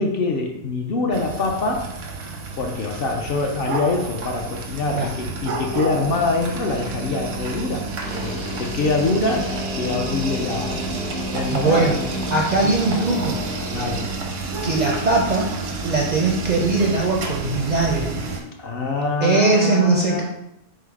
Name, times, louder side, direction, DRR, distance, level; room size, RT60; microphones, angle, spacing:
voice 1, 0.0-1.9 2.5-10.7 11.3-12.0 12.6-12.7 13.7-14.1 18.6-20.2, left 3 dB, 60° left, 2 dB, 0.7 m, -24 dB
sound 1, 1.1-18.4, right 3 dB, 90° right, 1.1 m, -30 dB
Guitar, 8.0-14.6, left 2 dB, 85° left, 1.9 m, -33 dB
voice 2, 11.5-11.9 12.3-13.4 14.6-15.5 15.8-18.1 19.2-20.2, right 3 dB, 55° right, -1 dB, 0.5 m, -20 dB
4.6 x 2.0 x 4.5 m, 0.82 s
omnidirectional pair, 1.3 m